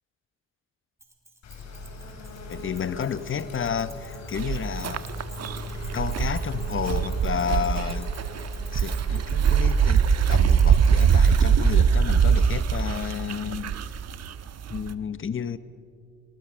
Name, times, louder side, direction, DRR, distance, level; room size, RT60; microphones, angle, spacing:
Keys jangling, 1.0-11.6, right 2 dB, 10° right, 5.3 m, -50 dB
sound 1, 1.4-12.0, left 2 dB, 65° left, 5.5 m, -40 dB
voice 1, 2.5-5.0 5.9-8.1 8.7-10.0 10.3-13.8 14.7-15.6, left 7 dB, 40° left, 15 dB, 1.0 m, -31 dB
sound 2, 4.3-14.9, right 7 dB, 55° right, 1.2 m, -22 dB
26.0 x 24.5 x 6.4 m, 2.3 s
cardioid pair, 90°, 30 cm